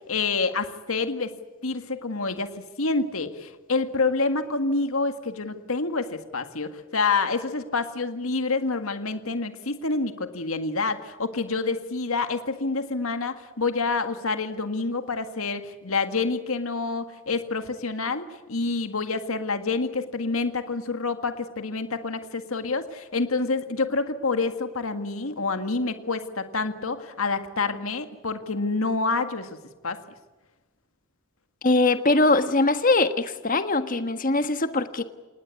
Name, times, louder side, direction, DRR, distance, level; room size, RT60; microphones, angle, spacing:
voice 1, 0.0-1.3 1.6-29.6 29.8-30.0, left 3 dB, 75° left, 8 dB, 1.8 m, -27 dB
voice 2, 31.6-35.0, left 2 dB, 40° left, 9 dB, 1.5 m, -22 dB
27.5 x 19.5 x 8.4 m, 1.2 s
head